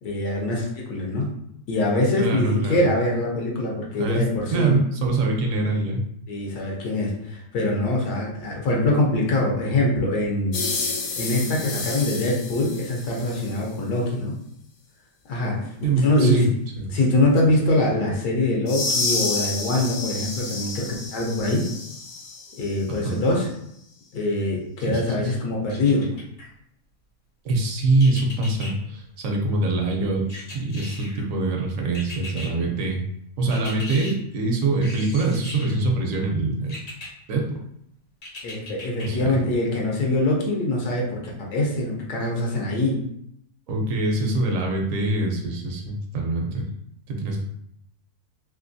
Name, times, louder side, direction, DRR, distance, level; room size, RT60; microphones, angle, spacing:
voice 1, 0.0-1.3 1.7-4.7 6.3-10.6 11.2-14.3 15.3-15.7 16.0-16.5 16.9-21.7 22.6-23.5 24.1-26.0 38.4-43.0, left 2 dB, 85° left, -1 dB, 1.4 m, -23 dB
voice 2, 2.2-2.8 4.0-6.1 15.8-16.5 16.8-16.9 17.4-17.5 22.9-23.2 24.9-25.3 27.4-30.3 30.5-33.0 33.4-36.8 37.3-37.5 39.0-39.4 43.7-46.7 47.1-47.4, right 2 dB, 65° right, 1 dB, 1.0 m, -24 dB
sound 1, 10.5-13.6 18.7-22.7, left 3 dB, 70° left, 1.0 m, -30 dB
sound 2, 25.7-26.5 28.0-28.7 30.3-31.2 31.9-32.5 33.5-34.1 34.8-35.8 36.7-37.1 38.2-39.1 39.5-39.6, left 2 dB, 50° left, 0.6 m, -38 dB
3.3 x 3.0 x 2.6 m, 0.73 s
omnidirectional pair, 1.7 m